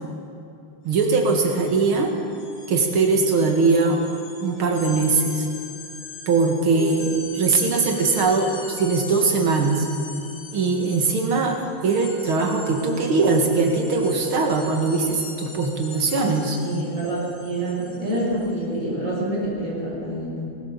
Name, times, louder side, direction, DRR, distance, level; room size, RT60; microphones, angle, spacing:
voice 1, 0.8-2.1 2.7-4.0 4.4-5.5 6.3-9.9 10.5-16.6, right 4 dB, 85° right, 3 dB, 2.7 m, -21 dB
sound 1, 0.9-1.0 1.3-18.6, left 4 dB, 75° left, 3.1 m, -41 dB
voice 2, 16.6-20.5, right 1 dB, 40° right, -6 dB, 6.6 m, -27 dB
19.5 x 18.0 x 7.4 m, 2.6 s
omnidirectional pair, 2.2 m